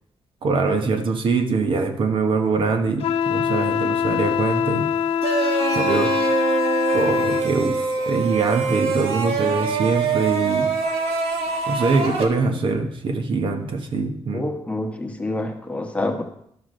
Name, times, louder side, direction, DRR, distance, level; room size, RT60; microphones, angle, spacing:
voice 1, 0.4-4.9 5.7-6.2 6.9-10.7 11.7-14.5, right 4 dB, 60° right, 5 dB, 1.2 m, -23 dB
Wind instrument woodwind instrument, 3.0-7.5, left 8 dB, 80° left, 0.4 m, -23 dB
sound 1, 5.2-12.2, right 5 dB, 90° right, 1.4 m, -24 dB
voice 2, 14.3-16.2, left 2 dB, 15° left, 3 dB, 1.0 m, -27 dB
12.0 x 4.7 x 6.4 m, 0.72 s
wide cardioid pair, 155°, 10 cm